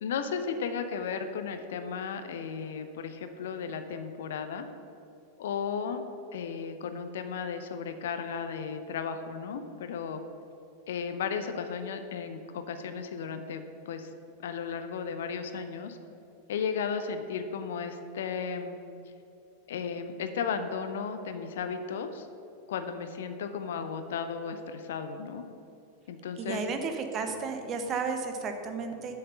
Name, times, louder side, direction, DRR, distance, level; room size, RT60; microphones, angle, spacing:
voice 1, 0.0-4.7 5.4-6.0 6.3-10.2 10.9-14.1 14.4-16.0 16.5-18.8 19.7-22.3 22.7-25.4 26.1-26.6, left 6 dB, 60° left, 8 dB, 0.5 m, -34 dB
voice 2, 26.4-29.2, right 4 dB, 30° right, 6 dB, 0.8 m, -33 dB
7.3 x 4.3 x 6.7 m, 2.7 s
figure-of-eight pair, 90°, 0 cm